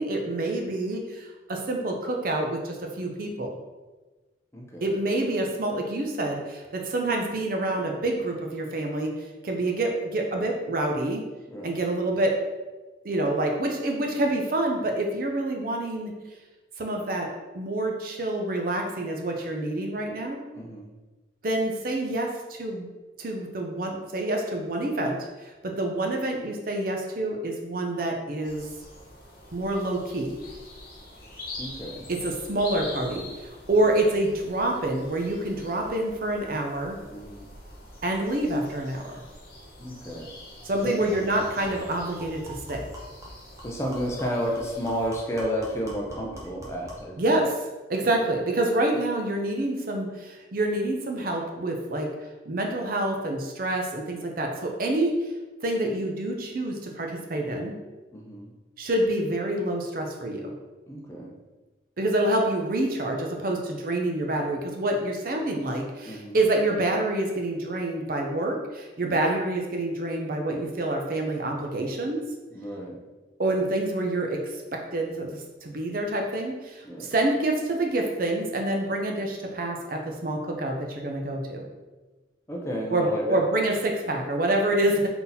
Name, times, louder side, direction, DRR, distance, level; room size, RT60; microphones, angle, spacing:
voice 1, 0.0-3.6 4.8-9.1 9.4-11.2 11.6-12.3 13.0-16.1 16.8-17.3 17.5-20.4 21.4-22.9 23.2-28.7 29.5-30.4 32.1-37.0 38.0-39.2 40.6-42.8 47.2-47.6 47.9-52.1 52.5-55.3 55.6-57.8 58.8-60.5 62.0-72.2 73.4-81.7 82.9-85.1, right 1 dB, 50° right, 2 dB, 0.5 m, -27 dB
voice 2, 4.5-4.8 11.5-11.8 20.5-20.9 31.6-32.1 37.1-37.5 39.8-40.3 40.8-41.3 43.6-47.2 48.0-48.1 58.1-58.5 60.9-61.3 66.1-66.4 69.0-69.2 72.5-73.0 76.8-77.1 82.5-83.4, equal, 15° left, -1 dB, 0.5 m, -32 dB
sound 1, 28.4-45.1, left 1 dB, 50° left, 1.1 m, -45 dB
sound 2, 40.2-40.3 40.6-40.7 41.1-47.1, equal, 15° right, 0.8 m, -44 dB
3.9 x 2.8 x 4.0 m, 1.2 s
head